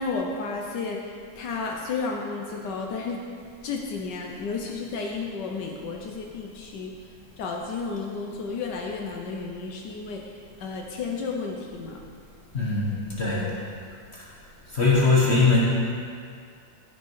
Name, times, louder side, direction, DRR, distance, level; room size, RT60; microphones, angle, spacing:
voice 1, 0.0-3.2 3.6-6.9 7.4-10.3 10.6-12.0, left 4 dB, 80° left, 1 dB, 1.5 m, -32 dB
voice 2, 12.5-13.5 14.7-15.6, left 3 dB, 40° left, -5 dB, 1.5 m, -21 dB
15.5 x 6.0 x 4.7 m, 2.2 s
omnidirectional pair, 1.8 m